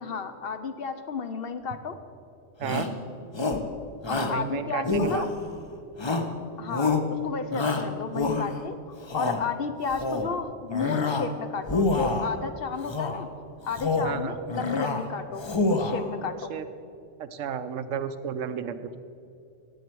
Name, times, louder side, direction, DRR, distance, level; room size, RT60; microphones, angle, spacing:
voice 1, 0.0-2.0 4.1-5.3 6.6-8.8 9.1-13.3 13.7-16.5, left 5 dB, 60° left, 8 dB, 0.8 m, -32 dB
Shout, 2.6-3.0 3.3-3.7 4.0-4.4 4.8-5.5 6.0-6.4 6.7-7.1 7.5-8.6 9.0-9.4 9.9-10.3 10.7-11.3 11.6-12.3 12.8-13.2 13.6-14.2 14.5-15.0 15.4-16.1, left 3 dB, 30° left, 0.6 m, -27 dB
voice 2, 4.3-5.3 14.0-14.4 16.5-16.7 17.2-19.0, right 8 dB, 90° right, 11 dB, 1.0 m, -32 dB
18.0 x 7.4 x 4.6 m, 2.6 s
omnidirectional pair, 1.3 m